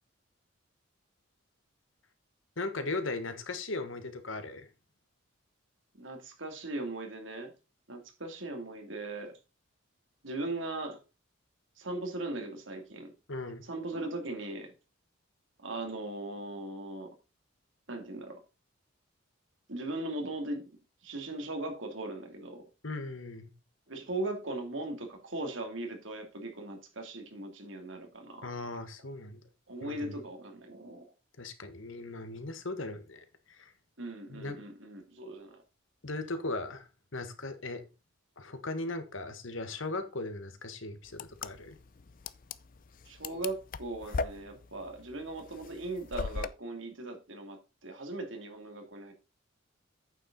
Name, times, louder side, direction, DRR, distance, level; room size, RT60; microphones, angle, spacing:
voice 1, 2.6-4.7 13.3-13.6 22.8-23.5 28.4-29.4 29.8-30.2 31.4-33.7 34.3-34.5 36.0-36.8 37.1-37.8 38.4-41.8, left 2 dB, 70° left, 1.6 m, -38 dB
voice 2, 5.9-7.5 7.9-9.3 10.2-11.0 11.8-13.1 13.6-14.7 15.6-17.1 17.9-18.4 19.7-20.7 21.0-22.6 23.9-28.5 29.7-31.1 34.0-35.6 43.1-49.1, right 2 dB, 65° right, 2.6 m, -39 dB
sound 1, 41.1-46.5, left 4 dB, 45° left, 0.4 m, -38 dB
8.9 x 7.1 x 4.0 m
head